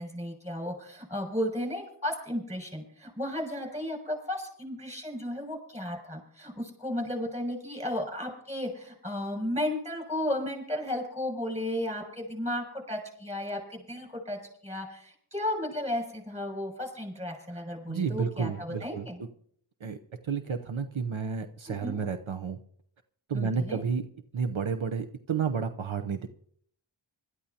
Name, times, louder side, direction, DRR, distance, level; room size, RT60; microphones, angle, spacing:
voice 1, 0.0-19.2 21.8-22.0 23.3-23.8, left 1 dB, 15° right, 2 dB, 6.7 m, -34 dB
voice 2, 17.9-19.1 19.8-20.0 20.2-22.6 23.3-24.0 24.3-26.3, right 6 dB, 75° right, 7 dB, 0.8 m, -31 dB
25.5 x 13.0 x 2.8 m, 0.63 s
wide cardioid pair, 50°, 48 cm